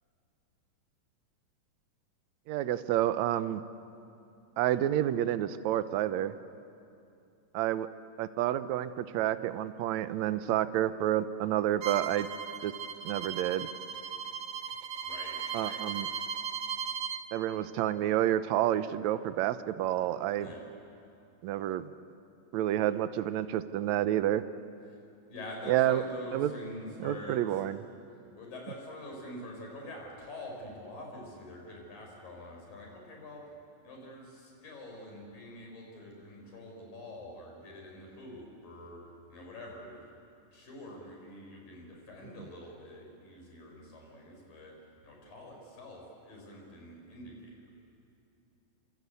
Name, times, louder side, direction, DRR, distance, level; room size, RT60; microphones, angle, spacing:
voice 1, 2.5-3.6 4.6-6.3 7.5-7.9 8.2-12.3 12.6-12.7 13.0-13.7 15.5-16.1 17.3-20.5 21.4-21.9 22.5-24.4 25.7-26.0 26.3-26.5 27.0-27.8, right 12 dB, 75° right, 12 dB, 1.7 m, -29 dB
Bowed string instrument, 11.8-17.2, right 7 dB, 55° right, 2.2 m, -37 dB
voice 2, 15.0-15.8 20.4-20.6 25.3-27.4 28.3-33.4 33.8-39.0 39.3-40.2 40.5-44.7 45.0-47.6, left 1 dB, 75° left, 0 dB, 7.3 m, -46 dB
28.0 x 25.5 x 8.3 m, 2.6 s
omnidirectional pair, 4.1 m